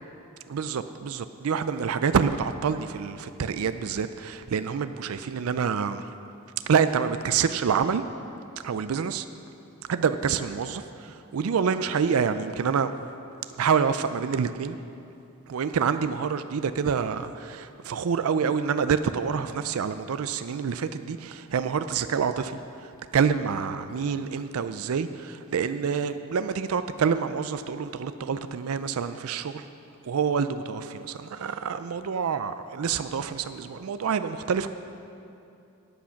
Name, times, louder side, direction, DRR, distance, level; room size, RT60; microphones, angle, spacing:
voice 1, 0.5-6.0 6.7-8.0 8.6-9.3 9.9-12.9 13.5-14.8 15.5-22.6 23.1-29.7 30.0-34.7, right 6 dB, 80° right, 11 dB, 0.4 m, -27 dB
14.0 x 8.7 x 5.8 m, 2.7 s
head